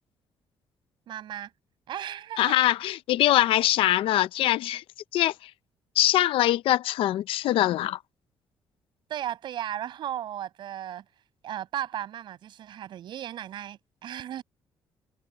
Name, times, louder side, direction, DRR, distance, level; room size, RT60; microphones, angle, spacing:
voice 1, 1.1-1.5 1.9-2.5 9.1-11.0 11.4-14.4, right 11 dB, 60° right, 7.9 m, -35 dB
voice 2, 2.4-4.8 5.1-5.5 6.0-8.0, left 14 dB, 90° left, 0.7 m, -23 dB
cardioid pair, 175°, 9 cm